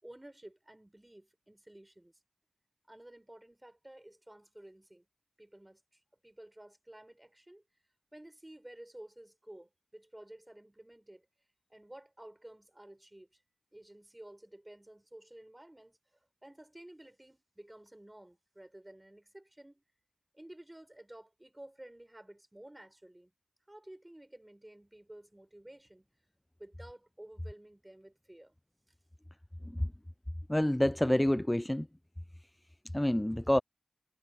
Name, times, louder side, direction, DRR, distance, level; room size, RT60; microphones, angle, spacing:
voice 1, 0.0-2.2 2.9-5.1 5.4-7.6 8.1-11.3 11.7-13.4 13.7-19.8 20.3-23.3 23.7-26.1 26.6-28.5, right 1 dB, 20° right, 7.0 m, -53 dB
voice 2, 30.5-31.9 32.9-33.6, left 1 dB, 15° left, 0.3 m, -28 dB
cardioid pair, 45°, 0 cm